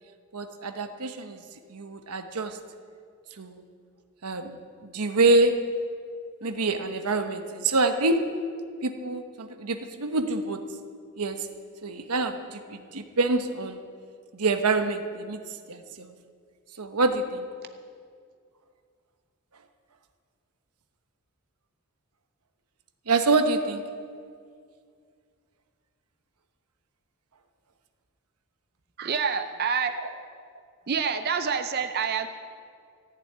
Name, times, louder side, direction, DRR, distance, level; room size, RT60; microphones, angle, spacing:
voice 1, 0.3-1.4 1.7-2.6 3.4-3.6 4.2-4.6 4.8-5.5 6.4-8.2 8.8-10.6 11.2-11.4 11.8-13.8 14.3-15.4 15.7-16.1 16.8-17.5 23.1-23.8 30.0-30.1, right 3 dB, 90° right, 7 dB, 1.0 m, -26 dB
voice 2, 29.0-29.9 30.9-32.3, right 6 dB, 45° right, 8 dB, 0.5 m, -27 dB
14.5 x 7.0 x 9.3 m, 2.2 s
head